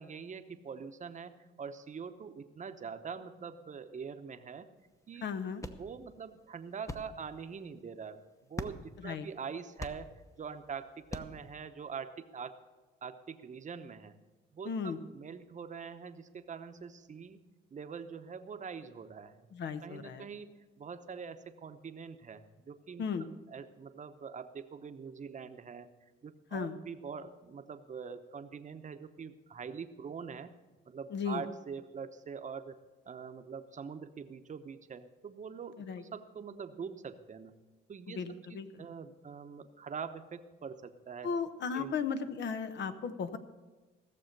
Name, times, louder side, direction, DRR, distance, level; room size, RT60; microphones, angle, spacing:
voice 1, 0.0-4.7 5.1-5.3 5.8-8.2 8.5-10.1 10.4-12.6 13.0-14.2 14.5-17.4 17.7-19.5 19.8-23.0 23.5-25.9 26.2-30.5 30.9-32.8 33.1-37.5 37.9-38.2 38.5-41.3 41.7-41.9, right 6 dB, 40° right, 8 dB, 0.9 m, -44 dB
sound 1, 4.8-11.5, left 2 dB, 15° left, 0.8 m, -47 dB
voice 2, 5.2-5.6 9.0-9.3 14.6-15.0 19.5-20.3 23.0-23.3 26.5-26.8 31.1-31.4 35.8-36.0 38.1-38.9 41.2-43.4, left 6 dB, 65° left, 10 dB, 0.9 m, -36 dB
15.5 x 6.9 x 6.6 m, 1.2 s
cardioid pair, 90°, 20 cm